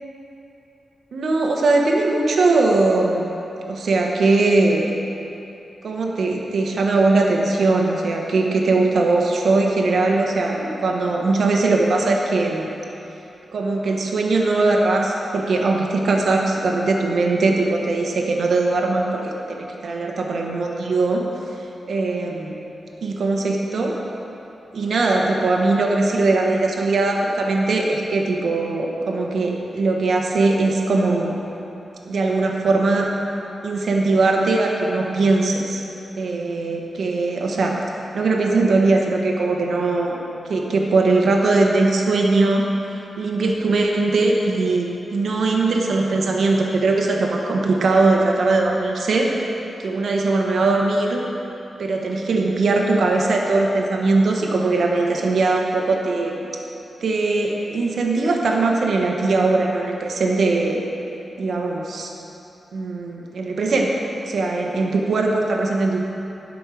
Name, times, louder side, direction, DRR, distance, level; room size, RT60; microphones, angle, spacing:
voice 1, 1.1-3.3 3.7-4.9 5.8-12.7 13.5-21.2 21.9-22.6 23.0-23.9 24.7-31.3 32.1-33.1 33.6-35.8 36.2-37.8 38.1-40.2 40.5-42.6 43.2-49.3 49.8-51.2 51.8-56.5 57.0-60.8 61.4-62.1 62.7-63.9 64.2-66.1, right 3 dB, 60° right, 0 dB, 1.1 m, -20 dB
11.5 x 5.3 x 6.2 m, 2.9 s
wide cardioid pair, 155°, 0 cm